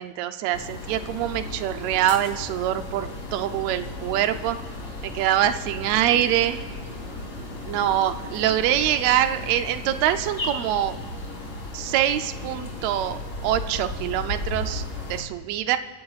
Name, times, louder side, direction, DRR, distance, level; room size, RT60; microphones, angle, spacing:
voice 1, 0.0-4.6 5.0-6.6 7.6-11.0 11.7-14.8 15.1-15.8, right 12 dB, 85° right, 9 dB, 1.5 m, -24 dB
sound 1, 0.5-15.2, left 2 dB, 30° left, 2.9 m, -35 dB
30.0 x 16.0 x 2.4 m, 1.5 s
omnidirectional pair, 3.8 m